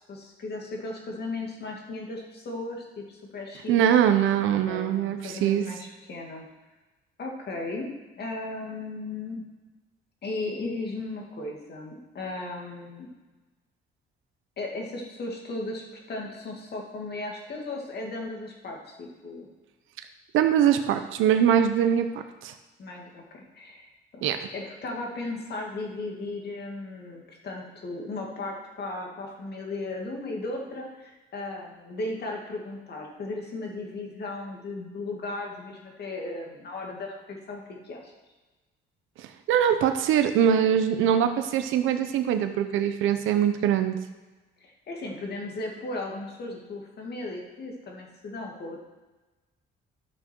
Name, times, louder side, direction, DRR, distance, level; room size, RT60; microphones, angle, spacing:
voice 1, 0.1-3.8 4.5-6.4 7.2-9.5 10.2-13.1 14.6-19.5 22.8-23.9 24.1-38.1 44.6-48.8, left 2 dB, 55° left, 0 dB, 2.3 m, -36 dB
voice 2, 3.7-5.6 20.3-22.5 24.2-24.4 39.2-44.0, right 9 dB, 90° right, 8 dB, 0.8 m, -23 dB
13.0 x 6.2 x 4.6 m, 1.2 s
cardioid pair, 90°, 20 cm